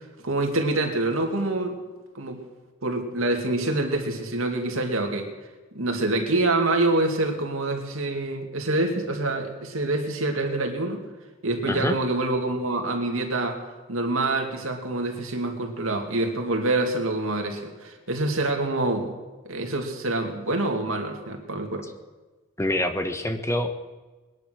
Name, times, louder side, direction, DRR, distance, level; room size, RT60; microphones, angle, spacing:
voice 1, 0.2-1.8 2.1-2.4 2.8-5.3 5.7-11.0 11.4-13.6 13.9-19.2 19.4-21.8, right 2 dB, 80° right, 3 dB, 2.4 m, -26 dB
voice 2, 11.7-12.0 22.6-23.7, left 1 dB, 15° left, 7 dB, 1.1 m, -25 dB
21.0 x 10.5 x 6.4 m, 1.2 s
head